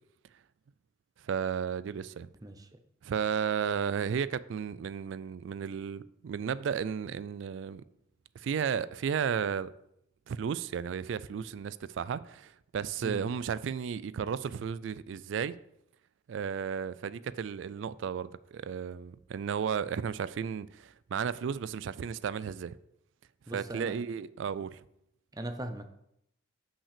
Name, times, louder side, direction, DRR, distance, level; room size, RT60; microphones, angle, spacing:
voice 1, 1.2-2.3 3.0-7.8 8.4-9.8 10.3-15.6 16.3-22.7 23.5-24.8, right 7 dB, 65° right, 0.3 m, -34 dB
voice 2, 23.5-23.9 25.3-25.9, right 1 dB, 20° right, 0.6 m, -38 dB
5.8 x 5.5 x 6.7 m
head